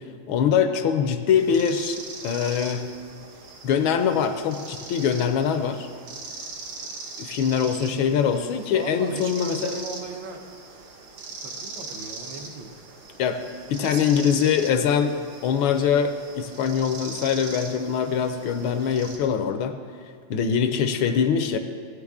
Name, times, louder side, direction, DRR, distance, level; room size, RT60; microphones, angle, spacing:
voice 1, 0.3-2.9 3.6-5.9 7.2-9.7 13.2-15.2 15.4-19.8 20.3-21.6, left 7 dB, 75° left, 8 dB, 1.4 m, -23 dB
sound 1, 1.3-19.2, right 3 dB, 90° right, 2.1 m, -40 dB
voice 2, 7.7-8.0 8.7-10.5 11.4-12.7 13.7-14.3, right 3 dB, 65° right, 3 dB, 1.5 m, -37 dB
15.5 x 9.8 x 3.6 m, 2.3 s
omnidirectional pair, 2.3 m